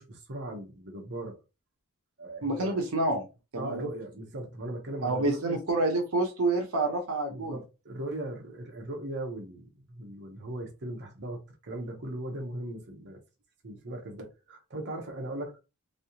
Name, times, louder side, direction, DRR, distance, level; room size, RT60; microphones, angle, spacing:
voice 1, 0.0-1.4 2.2-2.7 3.6-5.6 7.3-13.2 13.6-15.6, right 1 dB, 55° right, 0.9 m, -38 dB
voice 2, 2.4-3.3 3.5-3.9 5.0-7.6, right 2 dB, 75° right, 0.7 m, -28 dB
3.2 x 2.7 x 2.8 m
head